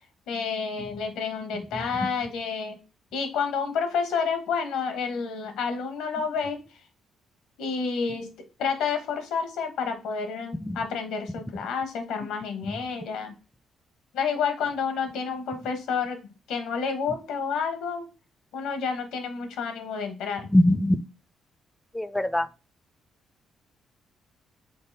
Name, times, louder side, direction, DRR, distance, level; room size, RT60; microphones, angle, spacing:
voice 1, 0.3-2.8 3.1-6.6 7.6-8.3 8.6-13.3 14.1-16.2 16.5-18.1 18.5-20.5, left 5 dB, 90° left, 1.0 m, -29 dB
voice 2, 1.7-2.1 10.6-10.8 20.5-21.0 21.9-22.5, left 1 dB, 10° left, 0.3 m, -22 dB
5.3 x 3.8 x 2.7 m
cardioid pair, 90°, 0 cm